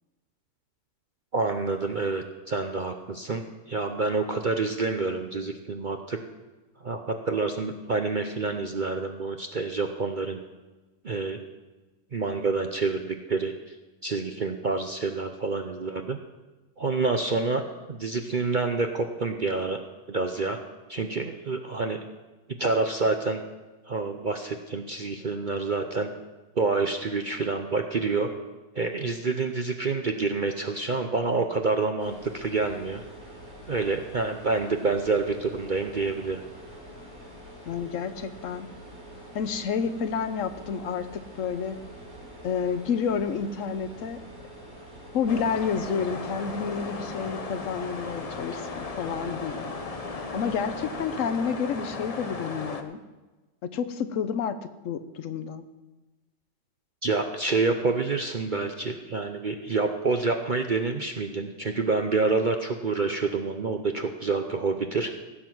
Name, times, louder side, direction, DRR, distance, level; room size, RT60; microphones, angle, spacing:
voice 1, 1.3-6.2 6.8-10.4 11.0-11.4 12.1-13.8 14.0-16.2 16.8-17.6 17.9-19.8 20.1-20.6 20.9-22.0 22.6-23.4 23.8-26.1 26.5-28.3 28.7-33.0 33.7-36.4 57.0-65.1, right 3 dB, 50° right, 5 dB, 0.6 m, -27 dB
sound 1, 32.0-51.1, equal, 10° right, 5.5 m, -46 dB
voice 2, 37.7-38.7 39.3-41.8 42.4-44.2 45.1-49.7 50.3-53.0 53.6-54.6 54.8-55.6, left 6 dB, 55° left, 10 dB, 1.1 m, -30 dB
sound 2, 45.3-52.8, left 4 dB, 35° left, 0.6 m, -36 dB
15.5 x 7.5 x 6.1 m, 1.2 s
omnidirectional pair, 1.8 m